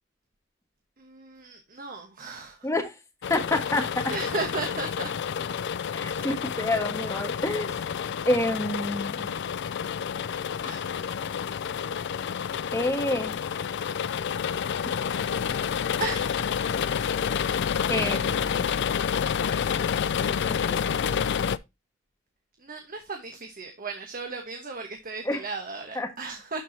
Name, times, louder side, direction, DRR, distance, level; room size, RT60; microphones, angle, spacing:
voice 1, 1.0-2.7 4.1-5.1 6.2-6.3 10.6-10.9 16.0-16.5 17.6-18.2 22.6-26.6, right 4 dB, 45° right, 1.2 m, -36 dB
voice 2, 2.6-2.9 3.3-4.0 5.9-7.7 8.2-9.3 12.7-13.3 17.9-18.7 20.0-20.9 25.2-25.4 25.9-26.1, left 1 dB, 15° left, 1.4 m, -28 dB
sound 1, 3.2-21.6, left 7 dB, 60° left, 0.4 m, -29 dB
11.5 x 4.7 x 2.8 m
head